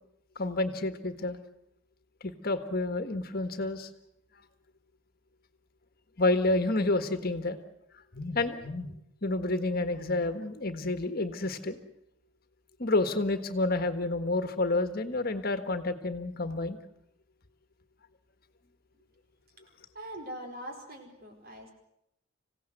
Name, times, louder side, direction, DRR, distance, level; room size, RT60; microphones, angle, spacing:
voice 1, 0.3-1.4 2.2-3.9 6.2-7.6 8.1-8.9 9.2-11.8 12.8-16.8, left 2 dB, 50° left, 9 dB, 1.5 m, -29 dB
voice 2, 19.9-21.7, right 1 dB, 50° right, 3 dB, 4.8 m, -42 dB
26.5 x 16.5 x 7.9 m, 0.79 s
head